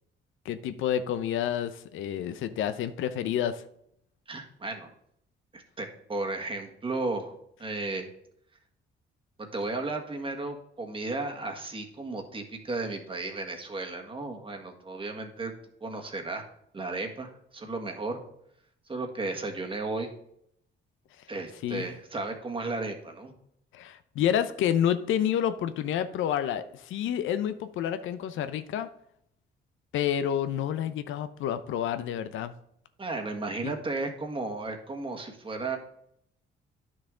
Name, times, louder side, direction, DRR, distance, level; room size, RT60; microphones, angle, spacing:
voice 1, 0.5-3.6 21.6-21.9 23.7-28.9 29.9-32.5 33.6-33.7, left 10 dB, 80° left, 12 dB, 0.6 m, -29 dB
voice 2, 4.3-4.9 5.5-8.1 9.5-15.5 15.8-16.4 16.7-18.2 18.9-20.1 21.3-23.3 33.0-35.8, right 3 dB, 25° right, 3 dB, 1.5 m, -34 dB
10.0 x 6.3 x 3.7 m, 0.72 s
cardioid pair, 90°, 20 cm